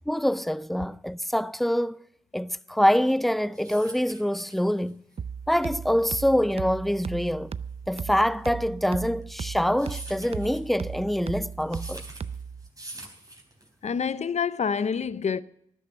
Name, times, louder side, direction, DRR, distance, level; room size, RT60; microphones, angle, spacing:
voice 1, 0.1-2.0 2.3-5.0 5.5-7.5 7.9-12.0, equal, ahead, 0.5 m, -25 dB
sound 1, 3.2-14.0, right 1 dB, 30° right, 3.7 m, -46 dB
sound 2, 5.2-12.7, right 6 dB, 55° right, 0.5 m, -37 dB
voice 2, 13.8-15.4, left 6 dB, 65° left, 0.7 m, -27 dB
13.0 x 10.0 x 7.8 m
supercardioid pair, 40°, 13 cm